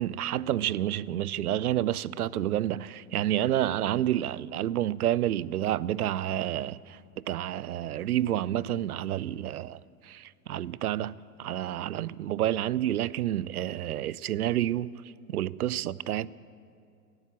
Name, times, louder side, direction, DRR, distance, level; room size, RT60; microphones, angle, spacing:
voice 1, 0.0-14.9 15.3-16.3, right 12 dB, 70° right, 0.5 m, -29 dB
17.0 x 9.6 x 8.7 m
figure-of-eight pair, 100°, 47 cm